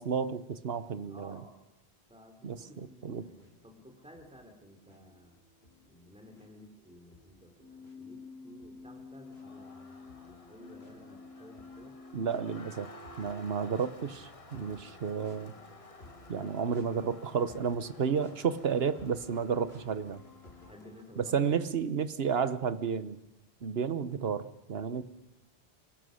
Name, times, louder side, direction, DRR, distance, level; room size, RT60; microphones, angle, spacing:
voice 1, 0.0-1.4 2.4-3.2 12.1-12.9 13.2-15.5 16.3-20.2 21.2-23.2 23.6-25.0, right 6 dB, 70° right, 13 dB, 1.2 m, -32 dB
voice 2, 1.1-1.6 2.1-5.4 5.8-12.0 20.4-21.5 25.0-25.1, equal, 5° right, 4 dB, 3.2 m, -54 dB
sound 1, 3.4-21.0, left 2 dB, 70° left, 3.4 m, -58 dB
Keyboard (musical), 7.6-13.5, left 3 dB, 85° right, 1.9 m, -50 dB
Crowd, 9.1-21.7, left 3 dB, 35° left, 1.2 m, -55 dB
25.5 x 18.5 x 6.5 m, 0.93 s
omnidirectional pair, 1.1 m